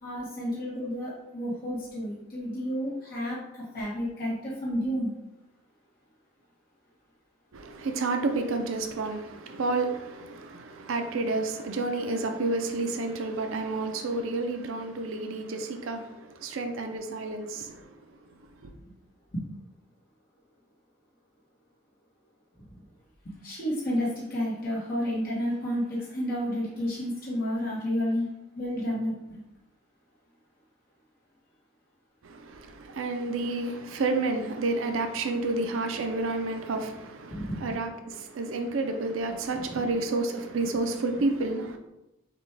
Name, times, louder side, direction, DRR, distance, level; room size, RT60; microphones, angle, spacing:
voice 1, 0.0-5.1 19.3-19.6 22.7-22.8 23.2-28.3 28.5-29.4 37.3-37.9 39.6-39.8, equal, 50° left, 1.0 m, -31 dB
voice 2, 7.5-17.9 32.2-41.8, right 3 dB, 80° right, 0.5 m, -30 dB
5.8 x 2.2 x 3.3 m
head